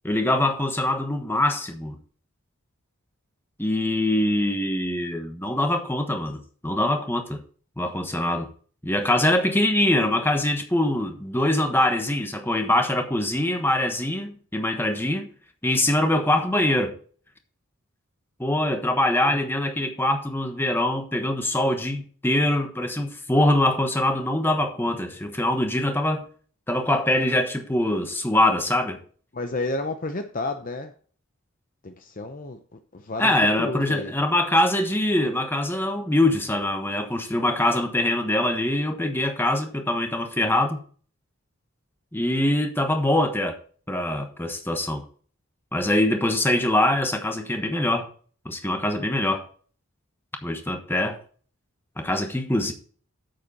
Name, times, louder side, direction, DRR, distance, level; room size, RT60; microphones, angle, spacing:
voice 1, 0.0-2.0 3.6-7.4 7.8-8.5 8.8-15.3 15.6-17.0 18.4-26.2 26.7-29.0 33.2-40.8 42.1-43.6 43.9-45.0 45.7-48.1 48.4-49.4 50.4-51.2 52.0-52.7, left 1 dB, 10° left, 1.2 m, -23 dB
voice 2, 29.3-30.9 31.8-34.2, left 2 dB, 40° left, 0.7 m, -31 dB
9.2 x 7.8 x 4.1 m
head